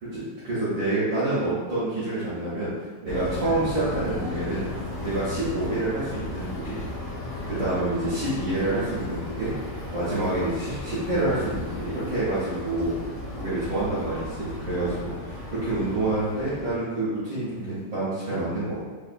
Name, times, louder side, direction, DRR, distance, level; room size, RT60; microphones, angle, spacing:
voice 1, 0.0-2.7 3.0-4.7 5.0-6.8 7.4-9.5 9.9-12.9 13.3-18.8, right 2 dB, 80° right, -11 dB, 1.0 m, -27 dB
sound 1, 3.1-16.7, left 2 dB, 85° left, 0.9 m, -35 dB
4.5 x 2.2 x 2.5 m, 1.3 s
omnidirectional pair, 3.3 m